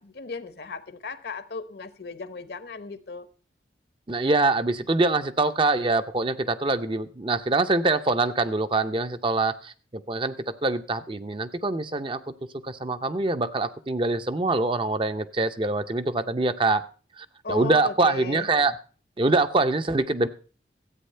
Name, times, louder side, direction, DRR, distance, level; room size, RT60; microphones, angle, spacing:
voice 1, 0.0-3.3 17.4-18.5, left 4 dB, 60° left, 0.9 m, -36 dB
voice 2, 4.1-9.7 10.1-12.2 12.6-16.8 17.2-18.7 19.2-20.3, right 2 dB, 30° right, 0.6 m, -24 dB
13.5 x 8.5 x 5.5 m
head